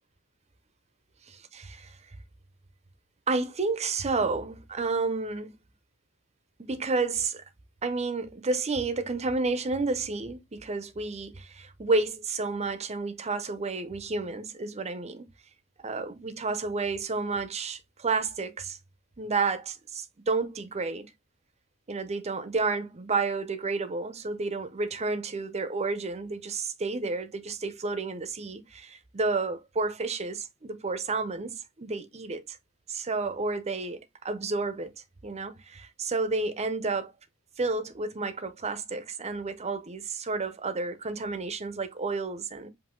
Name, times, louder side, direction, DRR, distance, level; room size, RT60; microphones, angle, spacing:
voice 1, 1.3-2.0 3.3-5.5 6.6-7.4 7.8-15.3 15.8-18.8 19.2-21.1 21.9-32.6 32.9-34.9 35.2-37.1 37.6-42.7, right 3 dB, 30° right, 0.7 m, -31 dB
5.1 x 2.7 x 3.8 m
head